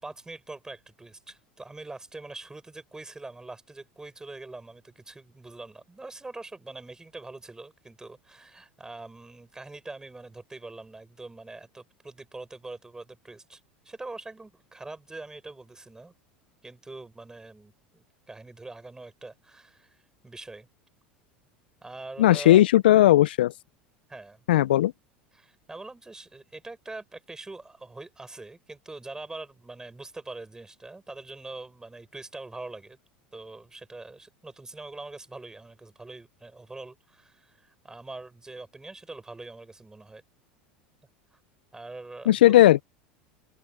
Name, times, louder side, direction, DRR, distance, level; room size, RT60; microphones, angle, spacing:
voice 1, 0.0-16.1 16.6-20.7 21.8-22.6 24.1-24.4 25.3-33.0 33.3-40.2 41.3-41.4 41.7-42.6, right 2 dB, 10° right, 6.5 m, -43 dB
voice 2, 22.2-23.5 24.5-24.9 42.3-42.8, left 14 dB, 75° left, 0.5 m, -17 dB
open air
hypercardioid pair, 85°, 5 cm